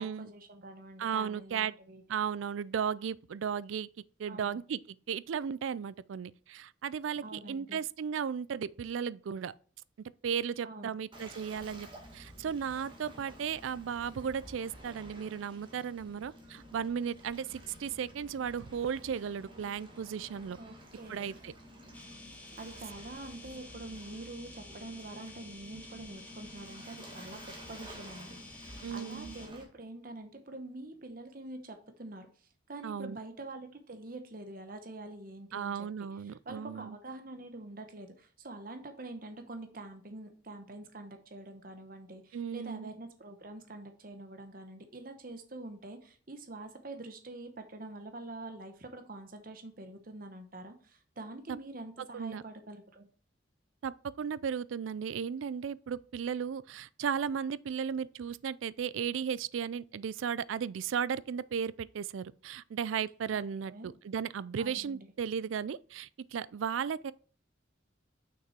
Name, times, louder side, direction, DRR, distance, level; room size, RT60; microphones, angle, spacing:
voice 1, 0.0-2.0 4.3-4.6 7.2-7.8 10.6-10.9 20.6-21.3 22.6-27.4 27.7-32.3 32.7-53.1 63.3-63.9 64.6-65.1, right 2 dB, 45° right, 1.0 m, -46 dB
voice 2, 1.0-1.7 2.1-3.9 4.2-4.8 5.1-9.5 10.2-11.9 12.1-20.6 21.1-21.5 28.8-29.4 32.8-33.2 35.5-37.0 42.3-42.9 51.5-51.6 52.1-52.4 53.8-67.1, right 7 dB, 85° right, 0.4 m, -35 dB
Waves surf, 11.1-29.6, equal, 25° right, 1.9 m, -51 dB
sound 1, 21.9-29.5, left 2 dB, 10° left, 0.9 m, -51 dB
6.1 x 5.9 x 4.3 m
head